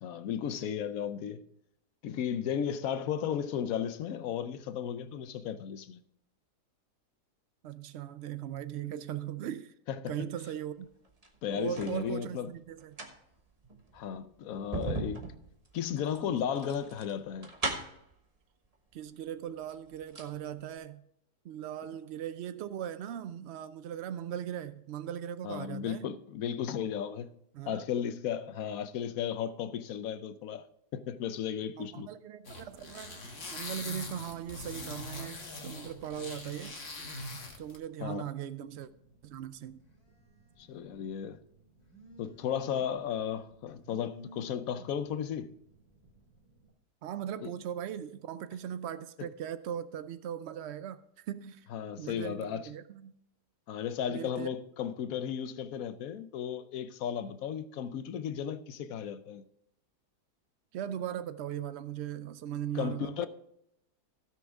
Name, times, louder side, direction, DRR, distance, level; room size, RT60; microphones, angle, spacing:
voice 1, 0.0-1.5 2.0-6.0 9.9-10.1 11.4-12.5 13.9-15.3 15.7-17.5 25.4-27.3 27.7-30.7 30.9-32.1 38.0-38.3 40.6-41.4 42.2-45.6 47.4-47.5 51.7-52.7 53.7-59.4 62.7-63.3, left 8 dB, 70° left, 1.0 m, -35 dB
voice 2, 7.6-9.7 10.1-10.9 11.5-13.0 18.9-21.0 21.4-26.1 27.5-27.8 31.7-36.8 37.6-38.9 39.2-39.8 47.0-51.7 52.0-53.1 54.1-54.5 60.7-63.3, right 10 dB, 80° right, 0.5 m, -39 dB
sound 1, 11.0-12.0 12.7-18.1 19.1-19.2 19.6-20.4 20.7-20.8, right 3 dB, 25° right, 1.2 m, -39 dB
sound 2, 32.4-37.8, left 2 dB, 40° left, 1.6 m, -42 dB
Telephone, 38.6-46.7, right 2 dB, 25° left, 2.2 m, -57 dB
16.5 x 6.3 x 3.5 m
omnidirectional pair, 1.7 m